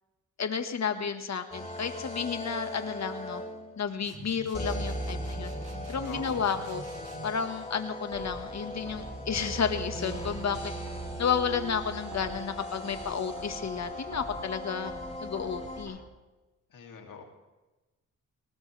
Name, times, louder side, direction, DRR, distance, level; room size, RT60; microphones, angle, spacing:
voice 1, 0.4-3.4 3.8-5.5 5.9-6.8 7.2-10.6 11.2-14.9 15.2-16.0, left 6 dB, 55° left, 7 dB, 1.7 m, -32 dB
sound 1, 1.5-3.8 4.5-15.9, equal, 20° left, 6.6 m, -38 dB
sound 2, 4.0-7.4, right 3 dB, 50° right, 1.9 m, -46 dB
voice 2, 6.0-6.5 16.7-17.2, left 6 dB, 80° left, 2 dB, 3.0 m, -43 dB
sound 3, 8.1-16.1, right 2 dB, 65° right, 5.1 m, -48 dB
20.0 x 18.5 x 3.5 m, 1.1 s
cardioid pair, 90°, 32 cm